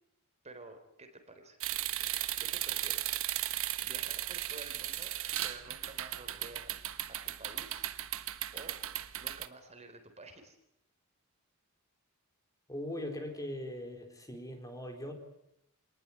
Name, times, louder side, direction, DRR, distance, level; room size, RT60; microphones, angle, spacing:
voice 1, 0.4-1.6 2.4-3.1 3.8-5.1 5.4-6.7 7.1-7.8 8.5-8.8 9.2-10.6, right 2 dB, 30° right, 6 dB, 4.0 m, -51 dB
sound 1, 1.6-9.5, right 13 dB, 65° right, 1.4 m, -36 dB
voice 2, 12.7-15.1, left 1 dB, 15° left, 4 dB, 4.1 m, -40 dB
26.5 x 19.5 x 9.9 m, 0.81 s
head